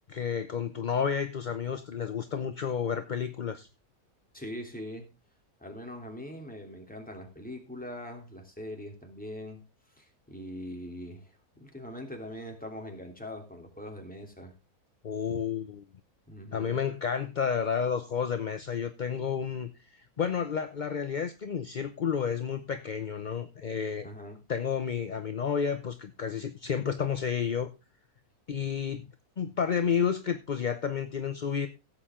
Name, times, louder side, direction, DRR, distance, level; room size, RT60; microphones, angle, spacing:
voice 1, 0.1-3.7 15.0-15.8 16.5-24.1 24.5-27.7 28.5-29.0 29.4-31.7, left 7 dB, 40° left, 8 dB, 0.7 m, -31 dB
voice 2, 4.3-5.1 5.6-9.6 9.9-14.5 16.3-16.8 24.0-24.4, left 1 dB, 5° left, 2 dB, 3.0 m, -42 dB
16.0 x 8.3 x 3.7 m, 0.27 s
omnidirectional pair, 1.7 m